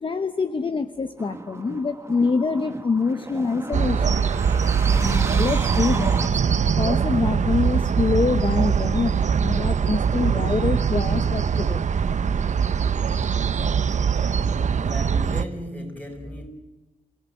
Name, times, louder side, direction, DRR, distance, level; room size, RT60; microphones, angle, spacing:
voice 1, 0.0-4.2 5.0-6.2 6.6-11.8, left 4 dB, 35° left, 1.0 m, -25 dB
sound 1, 1.2-6.3, right 2 dB, 20° right, 1.2 m, -34 dB
sound 2, 3.7-15.5, right 6 dB, 60° right, 0.8 m, -22 dB
voice 2, 14.8-16.5, equal, 10° left, 5.4 m, -36 dB
29.0 x 17.5 x 9.3 m
wide cardioid pair, 135°, 14 cm